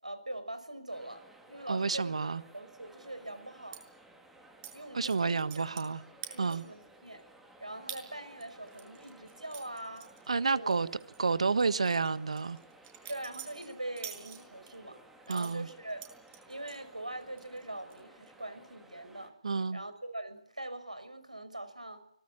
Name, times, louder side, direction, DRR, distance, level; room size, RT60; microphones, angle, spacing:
voice 1, 0.0-2.2 2.5-3.8 4.7-5.7 6.3-7.2 7.6-10.1 10.4-10.8 13.1-15.0 15.3-16.0 16.5-19.4 19.7-22.0, right 1 dB, 85° right, 5.9 m, -42 dB
sound 1, 0.9-19.3, right 2 dB, 5° right, 2.4 m, -57 dB
voice 2, 1.7-2.4 4.9-6.0 6.4-6.6 10.3-10.9 11.2-12.6 15.3-15.7 19.4-19.8, right 4 dB, 60° right, 1.5 m, -30 dB
sound 2, 3.7-3.8 4.6-4.7 5.0-5.9 6.2-6.8 7.2-7.3 7.9-8.0 8.4-10.7 11.0-11.2 11.6-14.7 15.3-16.8 17.2-17.6 17.9-18.3, right 10 dB, 25° right, 6.3 m, -47 dB
24.5 x 19.5 x 8.8 m
figure-of-eight pair, 145°, 4 cm